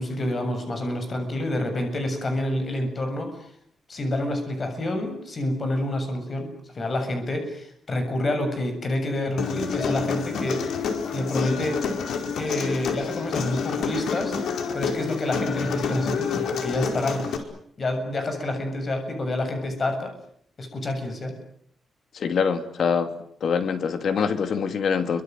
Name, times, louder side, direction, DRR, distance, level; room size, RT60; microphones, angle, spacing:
voice 1, 0.0-3.5 3.9-6.5 6.7-10.7 11.1-11.8 12.3-14.4 14.7-17.5 17.8-20.1 20.6-21.4, left 1 dB, 35° left, 6 dB, 7.4 m, -28 dB
Human voice, 9.4-17.4, left 6 dB, 90° left, 4.8 m, -28 dB
voice 2, 22.1-23.1 23.4-25.2, left 6 dB, 60° left, 9 dB, 2.7 m, -24 dB
29.0 x 25.0 x 7.9 m, 0.66 s
wide cardioid pair, 155°, 0 cm